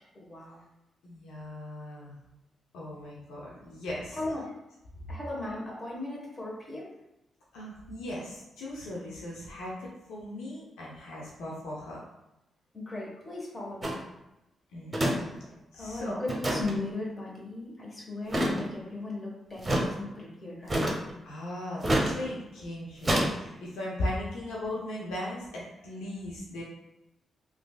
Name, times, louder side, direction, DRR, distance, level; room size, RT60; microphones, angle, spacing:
voice 1, 0.1-0.6 4.1-4.6 5.1-6.9 12.7-14.0 15.7-20.9, left 2 dB, 30° left, -3 dB, 1.3 m, -37 dB
voice 2, 1.0-2.2 2.7-4.2 7.5-12.0 14.7-15.3 15.7-16.2 21.2-26.6, left 1 dB, 80° left, -5 dB, 0.6 m, -38 dB
sound 1, 13.8-14.0 14.9-15.2 15.4-15.5 16.3-16.7 18.3-18.7 19.6-19.9 20.7-21.1 21.8-22.1 23.0-23.3, right 1 dB, 30° right, 0.8 m, -27 dB
3.1 x 2.5 x 2.3 m, 0.91 s
hypercardioid pair, 45°, 0 cm